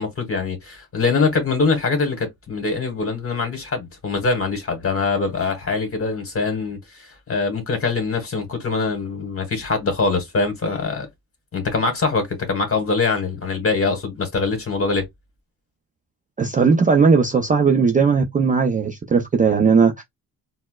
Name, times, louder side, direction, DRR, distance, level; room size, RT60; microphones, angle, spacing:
voice 1, 0.0-11.1 11.5-15.0, left 4 dB, 35° left, 1.3 m, -23 dB
voice 2, 16.4-20.0, right 5 dB, 20° right, 0.3 m, -17 dB
4.3 x 2.1 x 2.2 m
cardioid pair, 120°, 39 cm